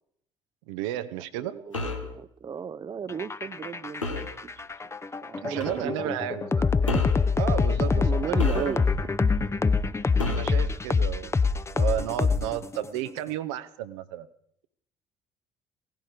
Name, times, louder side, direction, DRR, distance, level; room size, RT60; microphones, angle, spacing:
voice 1, 0.7-1.6 5.4-6.7 7.4-8.8 10.3-11.4 11.7-14.3, right 12 dB, 65° right, 11 dB, 0.8 m, -33 dB
voice 2, 1.4-4.3 5.2-5.9 7.8-8.8, right 6 dB, 25° right, 15 dB, 0.6 m, -35 dB
sound 1, 1.7-2.1 4.0-4.4 5.6-5.8 6.9-7.3 8.4-9.0 10.2-10.6, left 2 dB, 85° left, 1.1 m, -31 dB
sound 2, 3.1-12.9, left 4 dB, 15° left, 0.7 m, -25 dB
17.0 x 15.5 x 5.0 m, 0.72 s
figure-of-eight pair, 50°, 16 cm